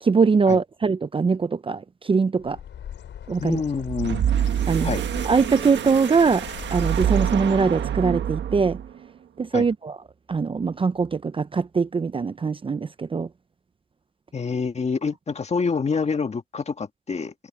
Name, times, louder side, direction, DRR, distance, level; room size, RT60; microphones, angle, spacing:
voice 1, 0.0-2.6 3.3-3.6 4.7-5.0 5.2-6.4 6.7-8.8 9.4-10.0 10.3-13.3, right 5 dB, 25° right, 0.7 m, -22 dB
Bird, 2.4-7.9, left 9 dB, 65° left, 6.9 m, -41 dB
voice 2, 3.4-4.2 4.8-5.0 9.5-9.7 14.3-17.3, left 5 dB, 35° left, 1.8 m, -26 dB
sound 1, 3.7-9.0, right 9 dB, 65° right, 1.5 m, -26 dB
cardioid pair, 90°, 20 cm